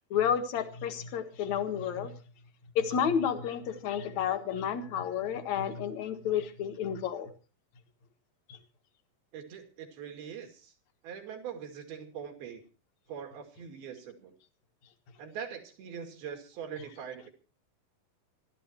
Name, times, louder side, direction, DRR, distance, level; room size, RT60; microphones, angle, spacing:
voice 1, 0.1-2.1 2.8-7.3, left 8 dB, 55° left, 2.7 m, -31 dB
voice 2, 9.3-10.7 11.0-12.6 13.1-14.3 15.2-17.3, right 7 dB, 85° right, 4.4 m, -42 dB
26.0 x 13.0 x 2.9 m
omnidirectional pair, 4.2 m